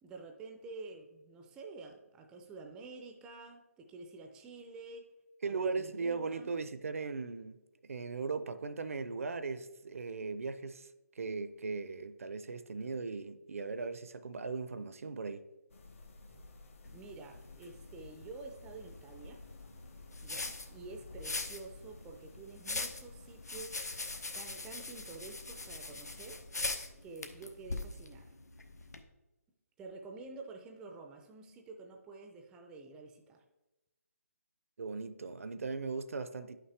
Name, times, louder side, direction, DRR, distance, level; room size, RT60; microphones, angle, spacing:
voice 1, 0.0-5.1 5.5-6.5 16.9-19.4 20.2-23.8 24.3-26.4 27.0-28.3 29.8-33.4, right 3 dB, 10° right, 0.4 m, -49 dB
voice 2, 5.4-10.9 11.1-15.5 34.8-36.6, right 4 dB, 60° right, 0.6 m, -38 dB
sound 1, 15.7-26.5, left 3 dB, 55° left, 1.3 m, -54 dB
sound 2, 16.8-29.0, left 3 dB, 85° left, 1.0 m, -42 dB
10.5 x 5.8 x 3.3 m
figure-of-eight pair, 155°, 8 cm